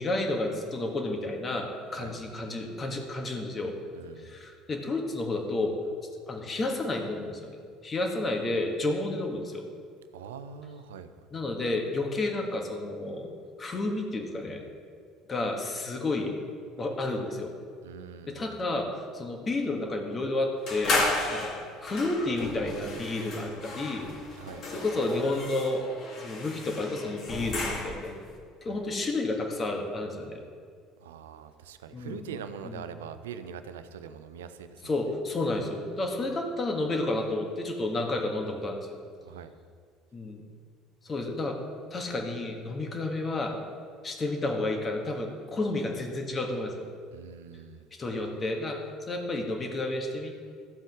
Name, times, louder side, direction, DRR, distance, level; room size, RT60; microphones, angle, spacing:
voice 1, 0.0-3.8 4.2-5.8 6.3-9.7 11.3-13.3 13.6-14.6 15.3-16.3 16.8-17.5 18.3-21.0 21.3-21.5 21.8-24.1 24.7-25.8 26.2-28.2 28.6-30.4 31.9-32.2 32.6-32.8 34.8-39.0 40.1-40.4 41.0-41.6 41.9-43.6 44.0-46.9 48.0-48.8 49.1-50.3, left 2 dB, 30° left, 3 dB, 1.7 m, -31 dB
voice 2, 2.0-2.3 3.9-4.4 10.1-11.1 17.8-18.5 24.4-24.7 28.6-28.9 31.0-34.9 39.2-39.5 47.1-47.9, right 7 dB, 70° right, 10 dB, 0.6 m, -43 dB
sound 1, 20.7-28.2, left 2 dB, 50° left, 2.2 m, -33 dB
13.5 x 7.4 x 3.7 m, 2.1 s
figure-of-eight pair, 60°, 0 cm